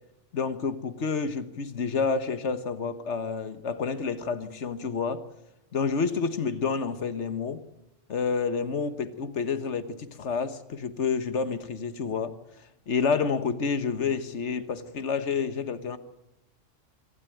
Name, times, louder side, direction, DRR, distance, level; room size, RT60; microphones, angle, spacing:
voice 1, 0.3-5.2 5.7-7.6 8.1-12.3 12.9-16.0, left 5 dB, 65° left, 1.6 m, -29 dB
25.5 x 12.5 x 9.2 m
omnidirectional pair, 1.3 m